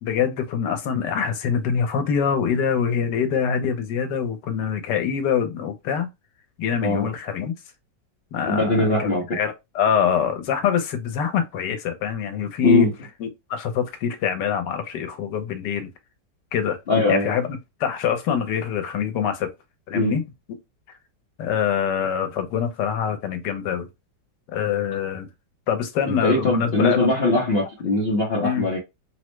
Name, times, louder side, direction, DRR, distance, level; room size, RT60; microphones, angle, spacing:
voice 1, 0.0-6.1 6.6-7.5 8.3-12.9 13.2-15.9 16.5-16.8 17.1-17.5 17.8-19.5 19.9-20.2 21.4-23.9 24.5-25.3 25.7-27.4 28.4-28.7, left 8 dB, 80° left, 1.3 m, -24 dB
voice 2, 8.5-9.4 12.6-12.9 16.9-17.3 19.9-20.1 26.1-28.8, left 2 dB, 50° left, 0.7 m, -21 dB
3.4 x 2.0 x 3.1 m
omnidirectional pair, 1.9 m